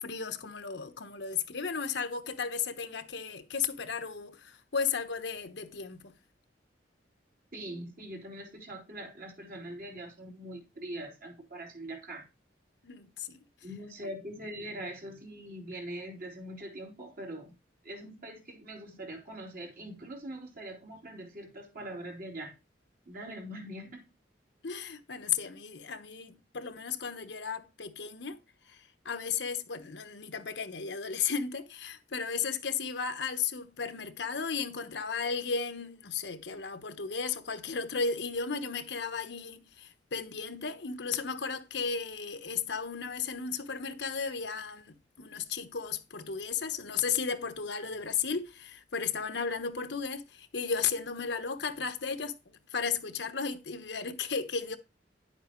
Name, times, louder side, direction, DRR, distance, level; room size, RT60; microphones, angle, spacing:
voice 1, 0.0-6.1 12.8-13.4 24.6-28.4 28.7-54.8, left 6 dB, 70° left, 1.1 m, -34 dB
voice 2, 7.5-12.3 13.6-17.5 17.8-22.5 23.1-24.1, right 1 dB, 50° right, 3.7 m, -42 dB
10.5 x 8.4 x 3.1 m
head